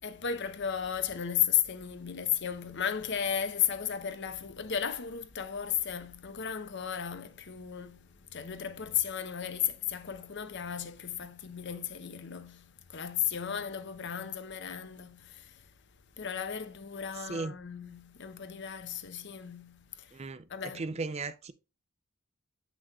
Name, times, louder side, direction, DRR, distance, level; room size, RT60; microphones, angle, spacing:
voice 1, 0.0-15.7 16.2-20.2 20.5-20.8, left 9 dB, 55° left, 0.7 m, -34 dB
voice 2, 20.1-20.4 20.7-21.5, right 3 dB, 30° right, 0.4 m, -36 dB
8.1 x 6.1 x 2.3 m
head